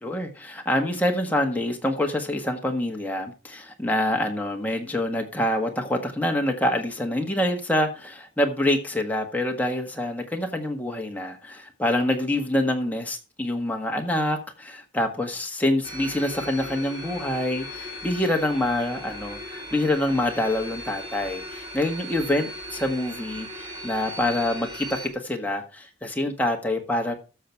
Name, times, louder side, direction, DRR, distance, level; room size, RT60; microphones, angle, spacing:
voice 1, 0.0-27.1, left 1 dB, 10° left, 1.6 m, -26 dB
sound 1, 15.8-25.1, equal, 20° right, 3.7 m, -38 dB
13.0 x 6.7 x 4.6 m
head